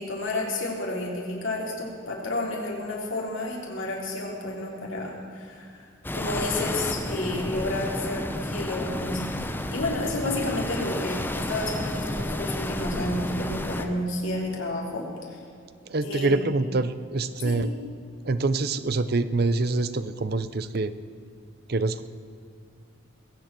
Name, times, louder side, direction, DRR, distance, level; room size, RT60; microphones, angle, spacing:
voice 1, 0.0-5.9 6.1-9.4 9.7-15.4 16.0-16.5 17.4-17.6, left 2 dB, 70° left, -2 dB, 3.5 m, -31 dB
sound 1, 6.0-13.9, left 1 dB, 10° left, 0.7 m, -31 dB
voice 2, 15.9-17.7 18.2-20.9 21.7-22.0, right 3 dB, 50° right, 13 dB, 0.6 m, -25 dB
21.0 x 7.9 x 7.5 m, 2.3 s
head